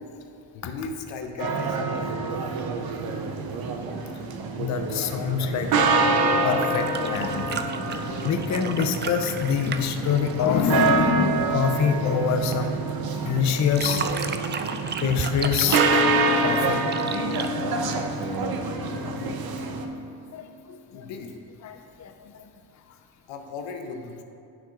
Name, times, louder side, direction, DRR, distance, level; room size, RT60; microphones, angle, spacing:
voice 1, 0.5-2.2 20.9-21.4 23.3-24.2, left 4 dB, 75° left, 5 dB, 0.8 m, -36 dB
sound 1, 1.4-19.9, right 3 dB, 50° right, 0.8 m, -26 dB
voice 2, 4.6-5.9 6.4-7.5 8.2-12.9 13.2-14.0 15.0-16.8 17.6-18.0 19.0-19.7 20.3-21.1 21.6-22.4, left 7 dB, 40° left, 6 dB, 0.6 m, -26 dB
sound 2, 6.4-11.1 13.5-18.4 19.8-19.9, right 6 dB, 25° right, 0.3 m, -34 dB
10.0 x 5.7 x 2.5 m, 2.6 s
supercardioid pair, 65°, 45 cm